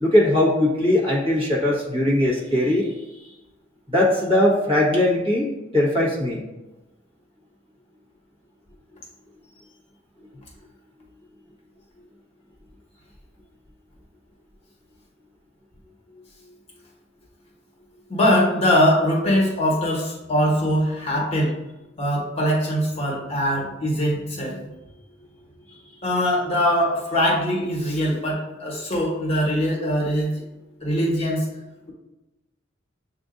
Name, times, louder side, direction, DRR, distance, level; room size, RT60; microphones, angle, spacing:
voice 1, 0.0-2.9 3.9-6.4, left 1 dB, 30° right, -5 dB, 1.4 m, -20 dB
voice 2, 18.1-21.5 22.0-24.6 26.0-30.4 30.8-31.5, equal, 35° left, -3 dB, 1.3 m, -22 dB
7.6 x 2.6 x 2.5 m, 1.0 s
head